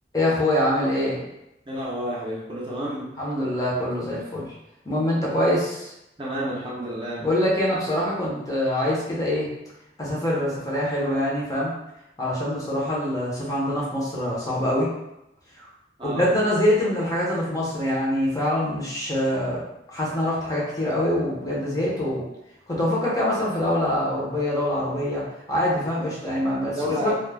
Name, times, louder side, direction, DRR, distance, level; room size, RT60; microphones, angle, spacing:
voice 1, 0.1-1.2 3.2-4.5 4.9-5.9 7.2-9.5 10.0-11.7 12.2-14.9 15.6-15.7 16.0-19.6 19.9-22.2 22.7-25.2 25.5-27.1, left 1 dB, 20° left, -6 dB, 0.6 m, -24 dB
voice 2, 1.7-3.1 6.2-7.3 16.0-16.3 26.8-27.1, equal, 30° right, -6 dB, 0.6 m, -30 dB
2.2 x 2.1 x 3.2 m, 0.87 s
head